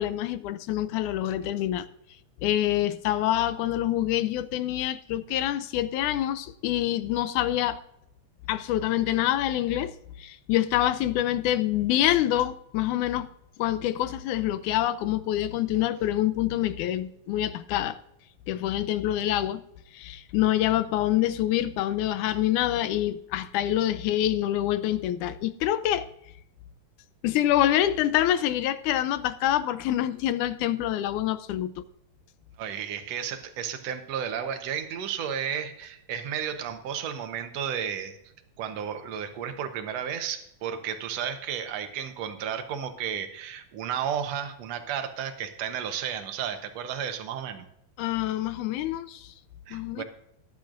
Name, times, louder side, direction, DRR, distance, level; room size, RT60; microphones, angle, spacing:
voice 1, 0.0-1.9 2.4-7.8 8.5-9.9 10.2-13.3 13.6-18.0 18.5-19.6 19.9-26.1 27.2-31.7 48.0-49.3 49.7-50.0, left 13 dB, 85° left, 2.1 m, -26 dB
voice 2, 32.6-38.2 38.6-47.7 49.7-50.0, right 8 dB, 65° right, 2.1 m, -33 dB
18.0 x 10.5 x 2.6 m
omnidirectional pair, 3.5 m